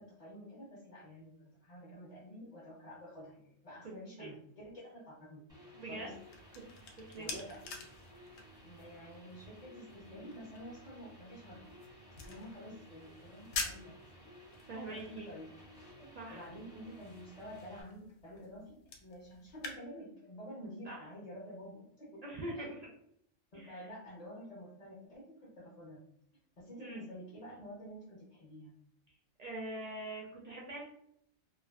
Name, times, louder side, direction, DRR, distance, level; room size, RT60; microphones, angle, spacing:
voice 1, 0.0-5.5 5.8-6.1 7.2-7.7 8.6-11.7 12.1-14.0 14.9-15.5 16.3-22.2 22.5-22.7 23.5-26.0 26.6-28.7, equal, 45° left, -6 dB, 0.6 m, -49 dB
sound 1, 5.5-17.8, equal, 5° right, 0.5 m, -56 dB
voice 2, 5.7-6.1 6.5-7.4 14.7-15.3 16.0-16.5 20.8-21.0 22.2-22.8 23.5-23.9 26.8-27.0 29.4-30.8, right 1 dB, 65° right, -3 dB, 0.4 m, -44 dB
sound 2, 6.0-19.8, left 4 dB, 70° left, 0.8 m, -48 dB
2.4 x 2.4 x 2.2 m, 0.70 s
omnidirectional pair, 1.2 m